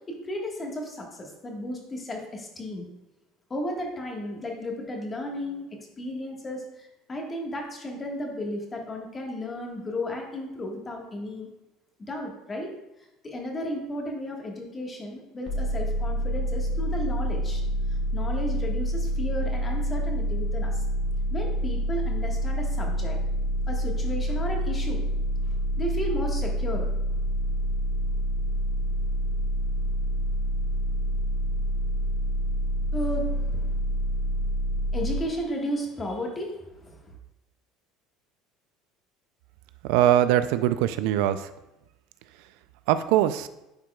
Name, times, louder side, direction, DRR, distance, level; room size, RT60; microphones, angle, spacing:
voice 1, 0.2-2.9 3.5-5.7 6.0-11.5 12.0-12.7 13.2-17.6 17.9-20.8 21.3-23.2 23.7-25.0 25.8-26.9 32.9-33.8 34.9-37.1, left 1 dB, 20° left, 0 dB, 1.4 m, -34 dB
sound 1, 15.5-35.2, equal, 45° left, 1.5 m, -27 dB
voice 2, 39.8-41.5 42.9-43.5, right 12 dB, 75° right, 12 dB, 0.3 m, -22 dB
10.5 x 4.7 x 2.3 m, 0.94 s
cardioid pair, 125°, 0 cm